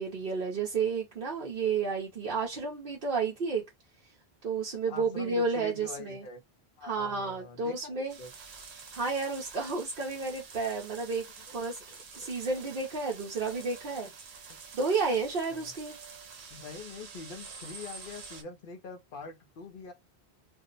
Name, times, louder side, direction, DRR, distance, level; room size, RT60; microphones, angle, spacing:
voice 1, 0.0-3.6 4.4-6.2 6.8-8.2 8.9-11.3 11.5-11.8 12.1-14.1 14.7-15.9, right 4 dB, 55° right, 0.9 m, -31 dB
voice 2, 4.9-6.4 6.8-8.3 12.2-12.3 15.5-15.7 16.5-19.9, left 4 dB, 60° left, 0.8 m, -44 dB
sound 1, 8.1-18.4, right 5 dB, 80° right, 1.0 m, -48 dB
2.6 x 2.0 x 3.8 m
omnidirectional pair, 1.1 m